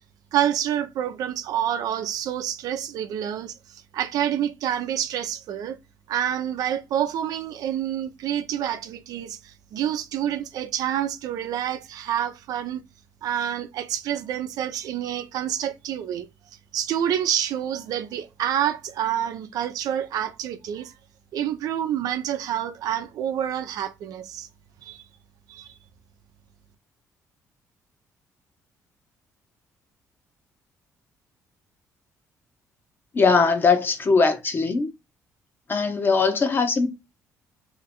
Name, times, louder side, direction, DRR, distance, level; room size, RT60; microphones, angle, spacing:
voice 1, 0.3-5.8 6.1-12.8 13.2-16.3 16.7-20.9 21.3-24.5 24.8-25.0 25.5-25.7, right 10 dB, 75° right, 0.7 m, -28 dB
voice 2, 33.1-34.9 35.7-36.9, left 4 dB, 35° left, 0.9 m, -20 dB
2.9 x 2.6 x 4.2 m
cardioid pair, 105°, 6 cm